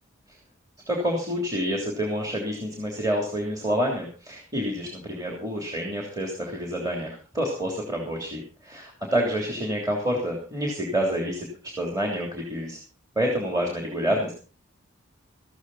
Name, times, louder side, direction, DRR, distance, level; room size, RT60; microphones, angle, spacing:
voice 1, 0.9-11.5 11.8-12.8 13.1-14.3, equal, 15° right, -1 dB, 3.1 m, -28 dB
14.5 x 14.0 x 4.1 m, 0.36 s
head